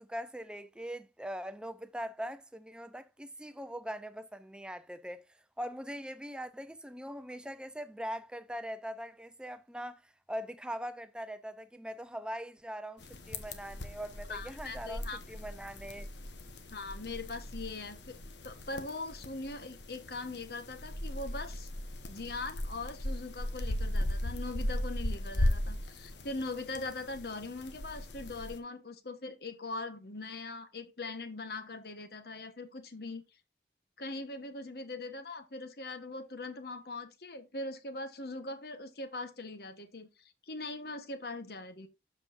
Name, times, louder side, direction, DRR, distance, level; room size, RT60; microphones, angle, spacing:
voice 1, 0.0-16.1, equal, 5° right, 0.5 m, -42 dB
sound 1, 13.0-28.6, left 1 dB, 80° left, 1.2 m, -37 dB
voice 2, 14.3-15.2 16.7-18.2 18.4-21.7 22.1-33.2 34.0-41.9, left 2 dB, 60° left, 1.1 m, -41 dB
12.5 x 5.3 x 2.5 m
head